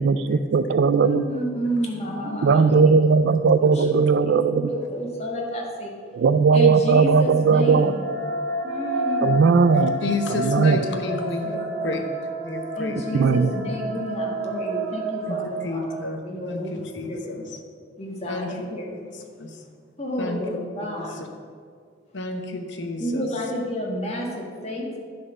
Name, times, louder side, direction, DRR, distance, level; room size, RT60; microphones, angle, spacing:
voice 1, 0.0-1.2 2.4-4.6 6.1-7.9 9.2-9.9 10.3-10.8 13.1-13.5, right 5 dB, 65° right, 13 dB, 0.4 m, -18 dB
voice 2, 1.0-2.8 3.7-4.0 4.3-5.9 6.5-8.0 8.6-9.6 11.0-12.0 12.8-17.5 18.0-19.0 20.0-21.2 23.0-25.0, equal, 35° left, -2 dB, 1.5 m, -31 dB
sound 1, 7.1-16.3, right 1 dB, 85° right, 2.6 m, -30 dB
voice 3, 9.7-11.5 11.8-12.0 12.4-13.2 15.3-15.4 15.6-16.2 16.4-16.6 16.9-17.4 18.3-18.7 19.4-19.5 20.2-20.4 22.1-23.2, left 2 dB, 65° left, 4 dB, 0.8 m, -30 dB
10.5 x 4.3 x 6.7 m, 2.1 s
head